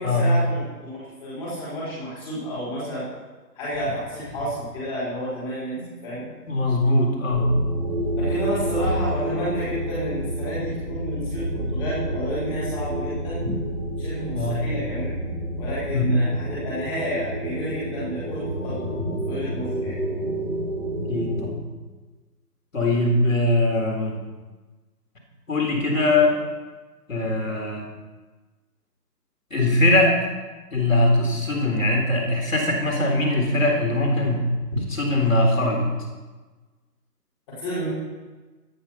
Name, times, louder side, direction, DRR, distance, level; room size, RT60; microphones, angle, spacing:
voice 1, 0.0-3.1 3.5-6.3 8.2-13.6 14.0-15.1 15.5-19.9 34.7-34.8 37.5-37.9, equal, 10° left, -9 dB, 5.3 m, -31 dB
voice 2, 6.5-7.5 14.3-14.6 15.9-16.0 21.1-21.6 22.7-24.2 25.5-26.3 27.1-27.8 29.5-30.3 30.7-34.4 34.9-35.9, left 1 dB, 50° left, 1 dB, 4.1 m, -21 dB
sound 1, 7.3-21.5, right 1 dB, 40° right, 2.5 m, -29 dB
12.5 x 11.5 x 5.8 m, 1.3 s
figure-of-eight pair, 160°, 49 cm